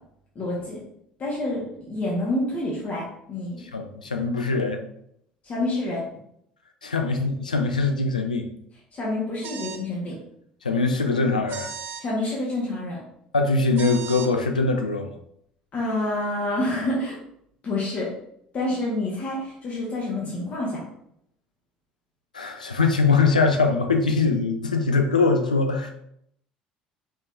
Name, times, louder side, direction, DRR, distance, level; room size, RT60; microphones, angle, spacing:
voice 1, 0.3-0.8 1.2-3.6 5.4-6.1 8.9-10.2 12.0-13.0 15.7-17.2 17.6-18.2 18.5-20.8, left 1 dB, 35° left, -5 dB, 1.4 m, -28 dB
voice 2, 3.6-4.8 6.8-8.5 10.6-11.7 13.3-15.1 22.3-25.9, left 3 dB, 80° left, 5 dB, 0.4 m, -22 dB
sound 1, 9.4-9.9 11.5-12.0 13.8-14.3, right 7 dB, 50° right, 0.6 m, -36 dB
5.1 x 3.4 x 2.7 m, 0.72 s
figure-of-eight pair, 60°, 4 cm